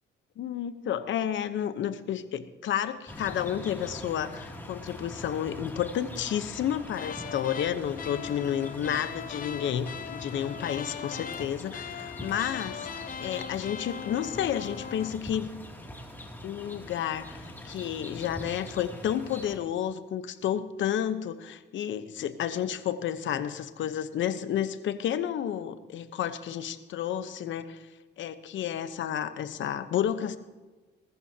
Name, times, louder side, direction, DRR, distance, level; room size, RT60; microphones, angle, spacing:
voice 1, 0.4-12.9 13.2-15.5 16.4-27.9 28.2-30.4, left 10 dB, 70° left, 11 dB, 1.0 m, -31 dB
sound 1, 3.1-19.6, equal, 10° left, 2.6 m, -43 dB
sound 2, 7.0-15.2, left 7 dB, 45° left, 0.7 m, -40 dB
20.0 x 14.0 x 2.9 m, 1.2 s
cardioid pair, 90°, 20 cm